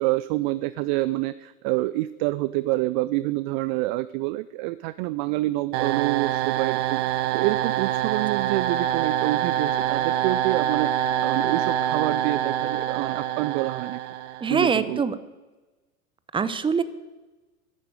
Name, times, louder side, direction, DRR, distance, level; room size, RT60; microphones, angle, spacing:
voice 1, 0.0-14.0 14.3-15.0, right 18 dB, 35° right, 17 dB, 0.4 m, -27 dB
sound 1, 5.7-14.6, right 11 dB, 55° right, 1.1 m, -26 dB
voice 2, 14.4-15.1 16.3-16.8, right 6 dB, 10° right, 15 dB, 0.8 m, -23 dB
11.5 x 11.0 x 9.4 m, 1.2 s
hypercardioid pair, 95°, 42 cm